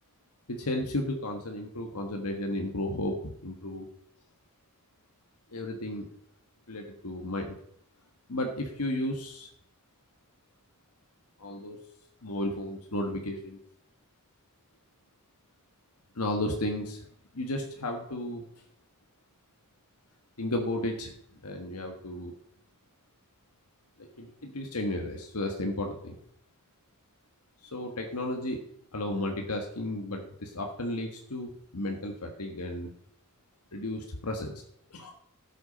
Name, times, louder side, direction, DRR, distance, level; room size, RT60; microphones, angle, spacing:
voice 1, 0.5-3.9 5.5-6.1 6.7-7.6 8.3-9.5 11.4-11.8 12.2-13.6 16.1-17.0 17.3-18.5 20.4-21.1 21.4-22.3 24.0-26.2 27.6-28.6 28.9-32.9 33.7-34.5 34.9-35.1, left 1 dB, 90° left, 3 dB, 1.5 m, -33 dB
12.5 x 8.3 x 5.2 m, 0.74 s
head